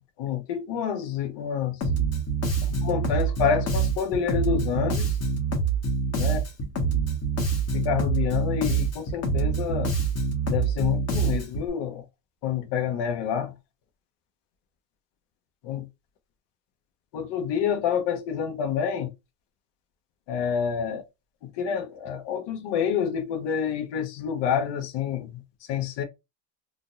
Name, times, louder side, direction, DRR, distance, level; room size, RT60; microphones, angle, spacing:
voice 1, 0.2-1.8 2.6-5.2 6.2-6.4 7.7-10.0 10.5-12.0 12.4-13.5 15.6-15.9 17.1-19.1 20.3-21.0 21.4-25.4 25.7-26.0, left 8 dB, 55° left, 1.1 m, -28 dB
Bass guitar, 1.8-11.7, right 4 dB, 30° left, 1.3 m, -26 dB
3.7 x 2.4 x 2.6 m
supercardioid pair, 115°, 50 cm